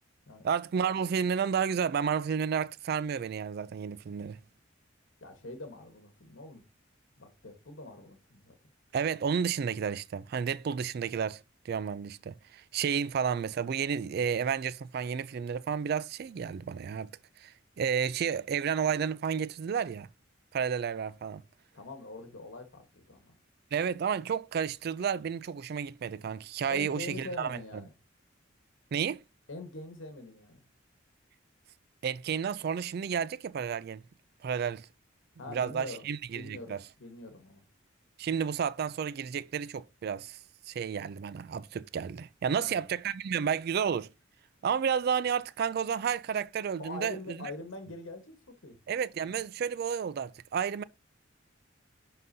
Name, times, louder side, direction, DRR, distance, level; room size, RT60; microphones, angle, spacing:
voice 1, 0.4-4.4 8.9-11.4 11.7-17.1 17.4-20.1 20.5-21.4 23.7-27.6 28.9-29.2 32.0-34.0 34.4-34.9 35.5-36.8 38.2-40.4 40.7-44.1 44.6-47.5 48.9-50.8, right 7 dB, 50° right, 0.3 m, -31 dB
voice 2, 5.2-6.6 7.2-8.5 21.7-23.4 26.7-27.9 29.5-30.6 35.4-36.1 36.3-37.6 42.5-42.9 46.8-48.3 48.6-48.8 49.2-49.3, left 2 dB, 70° left, 1.2 m, -44 dB
11.0 x 3.8 x 2.7 m
head